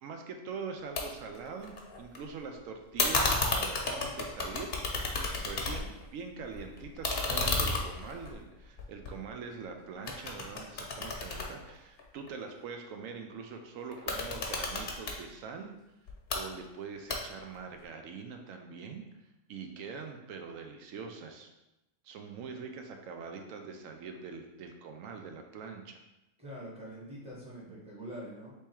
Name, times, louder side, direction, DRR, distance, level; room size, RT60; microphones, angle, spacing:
voice 1, 0.0-15.7 16.3-19.0 19.5-21.5 22.0-26.0, right 5 dB, 85° right, 4 dB, 1.0 m, -43 dB
sound 1, 1.0-1.1 1.3-2.2 3.0-6.0 6.4-9.6 10.1-12.3 13.9-15.2 16.1-16.4 17.1-17.6, left 3 dB, 55° left, 0.9 m, -32 dB
voice 2, 26.4-28.5, equal, 5° right, -6 dB, 1.1 m, -44 dB
3.5 x 3.1 x 4.3 m, 0.93 s
omnidirectional pair, 1.3 m